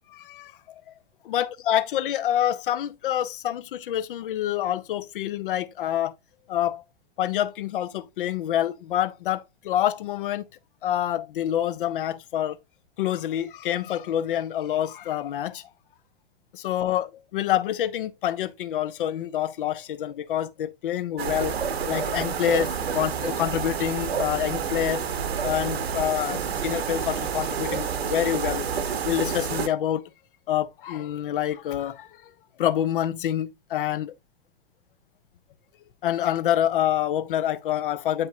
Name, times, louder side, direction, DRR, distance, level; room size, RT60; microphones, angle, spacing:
voice 1, 0.1-0.6 1.2-6.1 6.5-6.8 7.2-10.4 10.8-12.6 13.0-15.7 16.5-21.6 21.9-25.0 25.4-28.7 29.0-30.0 30.5-32.1 32.6-34.1 36.0-38.3, left 11 dB, 55° left, 0.9 m, -27 dB
sound 1, 21.2-29.7, right 7 dB, 70° right, 1.2 m, -29 dB
9.2 x 5.4 x 2.7 m
figure-of-eight pair, 105°, 32 cm